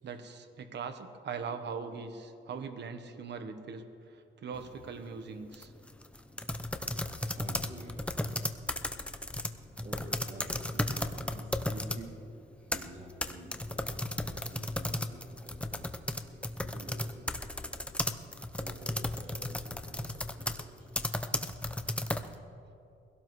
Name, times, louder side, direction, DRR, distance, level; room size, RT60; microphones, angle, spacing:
voice 1, 0.0-5.7, right 5 dB, 60° right, 7 dB, 1.2 m, -41 dB
sound 1, 4.5-4.9 5.5-12.0 12.5-22.3, left 1 dB, 5° left, 0.7 m, -35 dB
voice 2, 6.0-6.9 7.3-8.6 9.8-12.2 12.6-17.9 18.5-20.9 22.2-22.3, right 1 dB, 40° right, -3 dB, 2.6 m, -50 dB
23.0 x 17.0 x 3.2 m, 2.6 s
cardioid pair, 105°, 20 cm